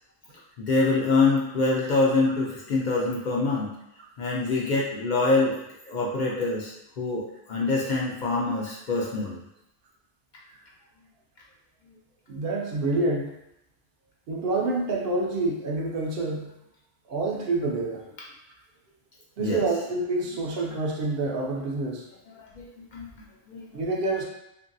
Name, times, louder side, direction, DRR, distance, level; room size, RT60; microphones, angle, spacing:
voice 1, 0.6-3.7 4.2-5.5 5.9-9.4 19.4-19.6 22.3-23.1 23.5-23.6, left 3 dB, 55° left, -4 dB, 0.5 m, -25 dB
voice 2, 12.3-13.3 14.3-16.5 17.1-18.0 19.4-22.0 23.7-24.2, right 2 dB, 70° right, -1 dB, 0.7 m, -27 dB
2.8 x 2.6 x 2.6 m, 0.85 s
omnidirectional pair, 1.1 m